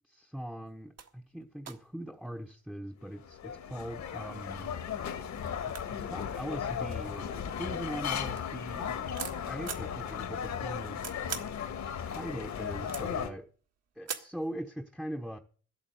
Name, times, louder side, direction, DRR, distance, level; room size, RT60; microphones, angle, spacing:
voice 1, 0.1-4.8 5.6-7.3 7.6-11.5 12.0-13.5 13.9-15.4, equal, ahead, 0.9 m, -41 dB
sound 1, 0.7-0.8 1.0-1.1 1.6-2.5 3.2-3.9 4.6-4.7 5.0-5.1 5.4-7.4 7.9-9.9 10.6-11.6 12.0-13.3 14.1-14.5, right 7 dB, 55° right, 1.8 m, -43 dB
sound 2, 3.0-13.3, left 8 dB, 65° left, 1.7 m, -36 dB
11.0 x 8.5 x 7.9 m
cardioid pair, 90°, 30 cm